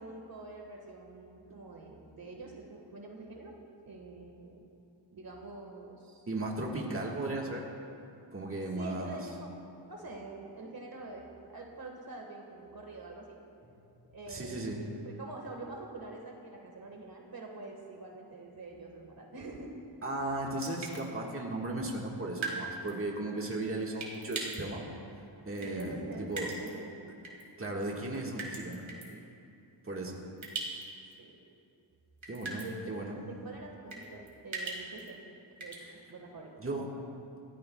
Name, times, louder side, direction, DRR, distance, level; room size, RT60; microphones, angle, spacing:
voice 1, 0.0-3.6 3.8-4.7 5.1-6.3 8.7-9.5 9.9-13.4 14.1-19.8 25.6-27.0 31.2-31.3 32.4-32.8 33.3-35.2 35.6-36.6, right 2 dB, 55° right, 0 dB, 1.7 m, -46 dB
voice 2, 6.3-7.7 8.3-9.2 14.3-14.8 20.0-24.8 25.4-26.5 27.6-29.2 29.8-30.2 32.3-33.2 36.6-36.9, right 2 dB, 30° right, -2 dB, 1.7 m, -36 dB
sound 1, 20.6-21.0 22.4-22.6 22.9-23.0 24.0-24.6 25.6-25.8 26.3-26.7 27.2-27.4 28.4-29.1 30.4-30.8 31.1-31.2 32.2-32.7 33.9-35.1 35.6-35.8, right 3 dB, 90° right, 2.5 m, -39 dB
23.0 x 15.5 x 2.3 m, 2.6 s
wide cardioid pair, 140°, 44 cm